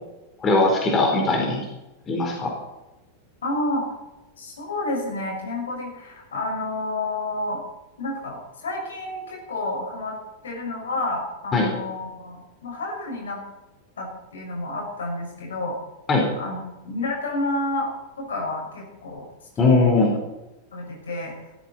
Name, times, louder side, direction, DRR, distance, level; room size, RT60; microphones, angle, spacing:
voice 1, 0.4-1.7 2.1-2.5 11.5-11.7 16.1-16.3 19.6-20.1, left 3 dB, 25° left, 0 dB, 4.0 m, -19 dB
voice 2, 3.4-3.8 4.4-7.6 8.0-10.2 10.4-13.4 14.0-15.7 16.4-17.9 18.2-19.2 19.6-20.1 20.7-21.3, left 2 dB, 65° left, 0 dB, 6.1 m, -30 dB
17.0 x 13.5 x 4.4 m, 1.0 s
figure-of-eight pair, 90°, 0 cm